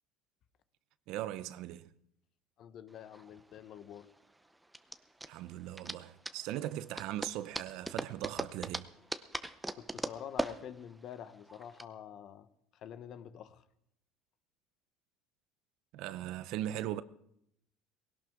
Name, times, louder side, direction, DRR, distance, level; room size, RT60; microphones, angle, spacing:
voice 1, 1.1-1.9 5.3-8.9 15.9-17.0, right 13 dB, 65° right, 0.7 m, -39 dB
voice 2, 2.6-4.1 9.7-12.5 12.7-13.6, left 9 dB, 50° left, 1.0 m, -47 dB
sound 1, 2.9-11.8, right 1 dB, 5° right, 0.7 m, -41 dB
20.0 x 17.5 x 3.7 m
cardioid pair, 135°, 0 cm